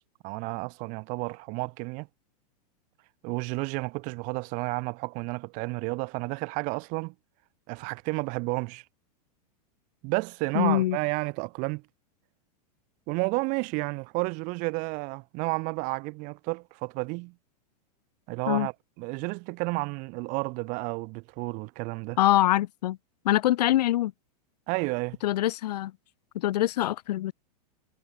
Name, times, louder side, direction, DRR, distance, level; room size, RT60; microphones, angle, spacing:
voice 1, 0.0-2.1 3.2-7.1 7.7-8.8 10.0-11.8 13.1-17.3 18.3-18.7 19.0-22.2 24.7-25.2, right 29 dB, 40° right, 2.6 m, -31 dB
voice 2, 10.5-11.0 18.5-18.7 22.2-23.0 23.2-24.1 25.2-25.9 26.3-27.3, left 14 dB, 80° left, 0.9 m, -24 dB
supercardioid pair, 155°, 20 cm